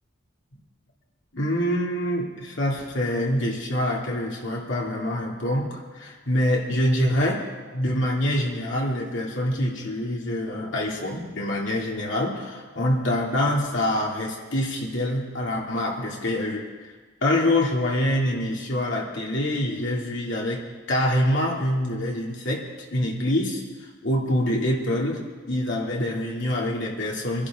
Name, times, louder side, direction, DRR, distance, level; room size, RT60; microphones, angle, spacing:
voice 1, 1.3-7.4 7.7-16.7 17.2-22.7 22.9-23.6 24.0-27.5, left 1 dB, 65° left, -2 dB, 2.5 m, -25 dB
23.5 x 11.5 x 3.6 m, 1.4 s
head